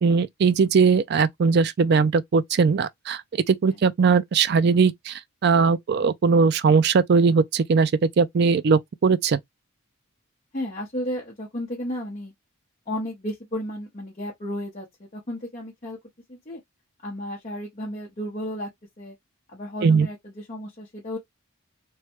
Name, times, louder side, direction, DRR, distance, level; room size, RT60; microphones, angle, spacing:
voice 1, 0.0-3.2 3.5-7.9 8.2-9.4 19.8-20.1, right 5 dB, 45° right, 0.3 m, -20 dB
voice 2, 10.5-12.3 12.9-14.9 15.1-16.0 16.3-16.6 17.0-18.7 19.0-19.1 19.5-21.2, equal, 35° left, 0.8 m, -33 dB
3.1 x 2.2 x 2.9 m
head